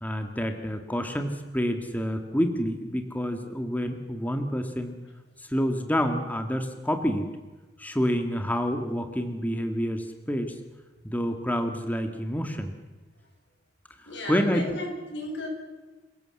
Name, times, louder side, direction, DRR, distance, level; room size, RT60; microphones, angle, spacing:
voice 1, 0.0-5.0 5.4-7.3 7.8-10.5 11.0-12.7 14.3-14.6, equal, 10° left, 5 dB, 1.8 m, -28 dB
voice 2, 14.1-15.5, left 1 dB, 80° left, 1 dB, 7.3 m, -34 dB
28.0 x 17.5 x 7.8 m, 1.2 s
head